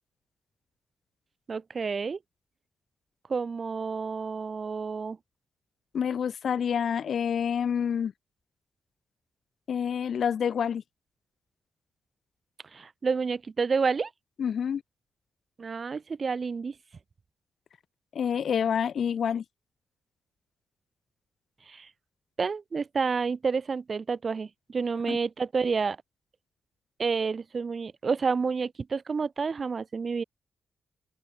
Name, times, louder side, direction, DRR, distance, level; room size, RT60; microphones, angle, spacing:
voice 1, 1.5-2.2 3.3-5.2 12.7-14.1 15.6-16.7 21.7-21.9 22.4-26.0 27.0-30.2, right 5 dB, 40° right, 0.9 m, -29 dB
voice 2, 5.9-8.1 9.7-10.8 14.4-14.8 18.1-19.4 25.1-25.2, left 7 dB, 60° left, 3.1 m, -27 dB
open air
wide cardioid pair, 130°, 0 cm